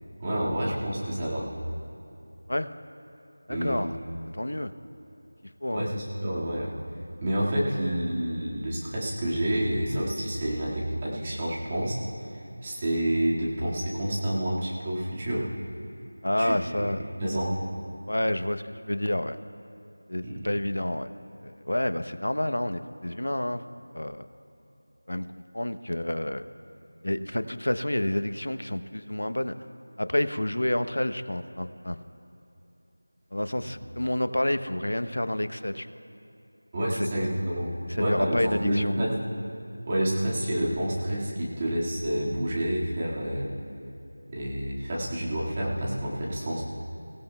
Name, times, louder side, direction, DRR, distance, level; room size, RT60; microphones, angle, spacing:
voice 1, 0.2-1.5 3.5-3.8 5.7-6.7 7.2-12.0 12.3-15.5 16.4-17.5 20.2-20.4 36.7-39.1 39.9-43.5 44.3-46.6, right 1 dB, 20° right, -6 dB, 2.0 m, -29 dB
voice 2, 3.5-3.9 4.3-4.7 5.6-5.9 16.2-17.0 18.1-19.4 20.1-21.1 21.4-23.6 23.9-24.3 25.1-26.4 27.0-29.5 30.0-32.0 33.3-35.9 36.9-37.1 37.9-38.9, left 1 dB, 85° left, 10 dB, 0.8 m, -29 dB
23.5 x 16.0 x 2.3 m, 2.8 s
figure-of-eight pair, 175°, 0 cm